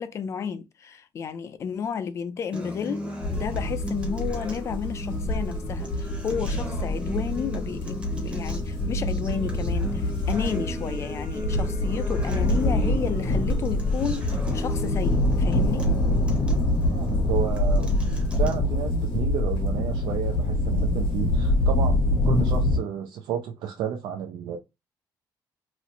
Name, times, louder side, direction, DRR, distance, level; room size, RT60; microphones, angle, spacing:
voice 1, 0.0-15.9, left 7 dB, 35° left, 0.4 m, -32 dB
Acoustic guitar, 2.5-18.5, equal, 15° right, 0.8 m, -37 dB
sound 1, 3.2-22.8, left 1 dB, 90° left, 1.0 m, -25 dB
voice 2, 16.9-18.0 18.4-24.6, right 8 dB, 75° right, 0.4 m, -32 dB
3.0 x 2.0 x 3.8 m
cardioid pair, 155°, 8 cm